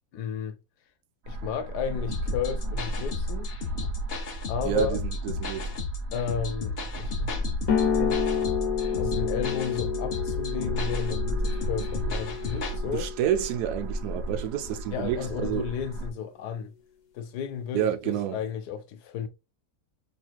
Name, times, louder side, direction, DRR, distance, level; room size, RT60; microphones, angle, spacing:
voice 1, 0.1-0.6 1.3-3.5 4.5-5.0 6.1-7.4 7.9-8.2 9.0-13.1 14.9-16.7 17.1-19.3, left 8 dB, 90° left, 1.2 m, -33 dB
sound 1, 1.2-16.1, right 1 dB, 65° right, 0.6 m, -35 dB
sound 2, 2.1-12.8, left 2 dB, 45° left, 0.9 m, -34 dB
voice 2, 4.6-5.7 12.9-15.6 17.7-18.4, right 10 dB, 80° right, 1.1 m, -29 dB
sound 3, 7.7-14.8, left 8 dB, 65° left, 1.3 m, -30 dB
4.4 x 3.1 x 2.3 m
omnidirectional pair, 1.7 m